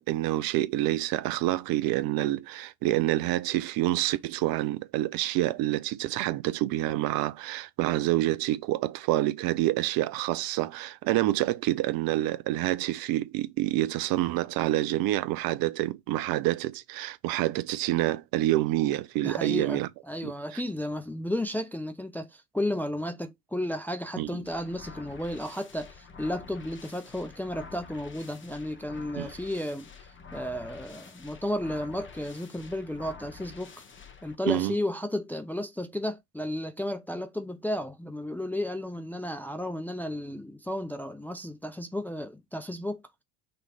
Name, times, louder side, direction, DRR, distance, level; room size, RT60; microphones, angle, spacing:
voice 1, 0.0-19.9 20.2-20.6 24.2-24.3 29.1-29.3 34.5-34.7, right 15 dB, 45° right, 0.7 m, -27 dB
voice 2, 19.2-19.8 20.1-33.8 34.2-43.0, left 1 dB, 5° left, 0.5 m, -33 dB
sound 1, 24.5-34.3, left 5 dB, 25° left, 1.3 m, -48 dB
6.0 x 3.2 x 4.9 m
hypercardioid pair, 75°, 49 cm